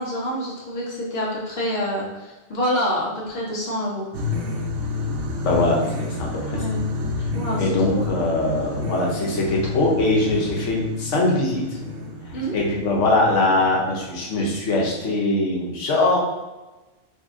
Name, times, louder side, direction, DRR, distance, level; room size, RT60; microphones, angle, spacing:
voice 1, 0.0-4.1 6.5-6.9 7.3-8.0 12.3-12.5, equal, 60° left, -5 dB, 1.2 m, -27 dB
sound 1, 4.1-15.1, left 3 dB, 75° right, 0.9 m, -30 dB
voice 2, 5.4-6.6 7.6-11.7 12.5-16.2, left 2 dB, 85° left, -2 dB, 1.2 m, -22 dB
2.7 x 2.7 x 3.6 m, 1.1 s
omnidirectional pair, 1.2 m